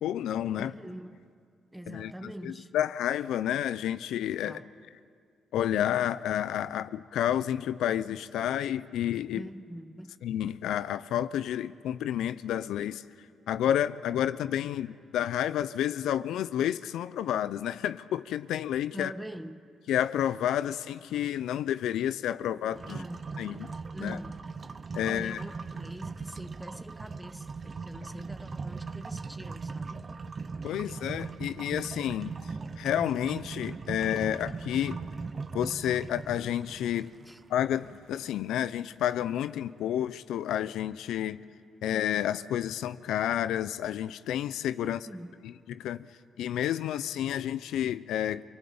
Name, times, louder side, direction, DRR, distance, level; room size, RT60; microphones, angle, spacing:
voice 1, 0.0-0.7 1.9-4.6 5.5-9.4 10.2-13.0 13.5-19.1 19.9-23.0 23.4-23.7 24.0-24.2 24.9-25.4 30.6-32.3 32.8-35.0 35.5-37.1 37.5-41.4 41.8-45.0 45.4-46.1 46.4-48.4, left 11 dB, 80° left, 0.6 m, -30 dB
voice 2, 0.6-1.2 1.7-2.7 4.4-4.7 9.3-10.2 18.9-19.6 22.9-24.4 24.9-30.1 37.3-37.4 44.8-45.4, right 1 dB, 5° right, 1.3 m, -44 dB
sound 1, 22.7-38.6, right 4 dB, 40° right, 0.8 m, -40 dB
28.0 x 19.5 x 8.7 m
supercardioid pair, 65°, 0 cm